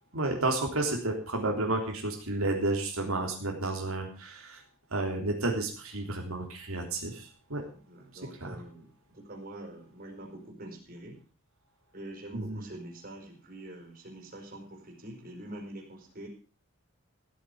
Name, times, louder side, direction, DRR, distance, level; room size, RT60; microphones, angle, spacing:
voice 1, 0.1-4.6 4.9-7.6 8.4-8.6 12.3-12.6, right 2 dB, 70° right, 2 dB, 3.4 m, -31 dB
voice 2, 7.7-8.9 9.1-11.2 11.9-16.3, right 1 dB, 40° right, 0 dB, 5.1 m, -45 dB
15.5 x 8.6 x 6.7 m, 0.38 s
head